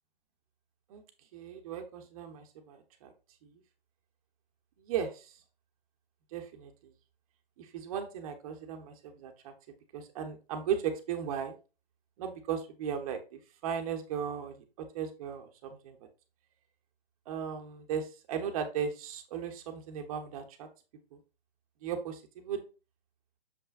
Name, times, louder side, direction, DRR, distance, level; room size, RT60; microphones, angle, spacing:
voice 1, 1.3-3.1 3.4-3.5 4.8-5.4 6.3-6.9 7.6-9.5 9.9-11.6 12.2-16.0 17.3-20.7 21.1-21.2 21.8-22.6, right 7 dB, 35° right, 5 dB, 1.1 m, -37 dB
7.0 x 5.6 x 2.4 m, 0.32 s
hypercardioid pair, 140°, 30 cm